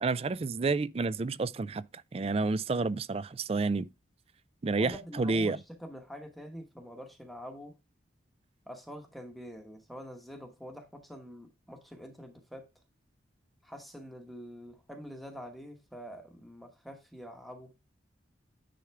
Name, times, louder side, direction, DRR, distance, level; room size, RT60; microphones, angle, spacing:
voice 1, 0.0-3.9 4.6-5.6, right 3 dB, 30° right, 0.3 m, -30 dB
voice 2, 4.7-7.8 8.7-12.7 13.6-17.7, equal, ahead, 1.0 m, -46 dB
10.0 x 3.6 x 4.6 m
head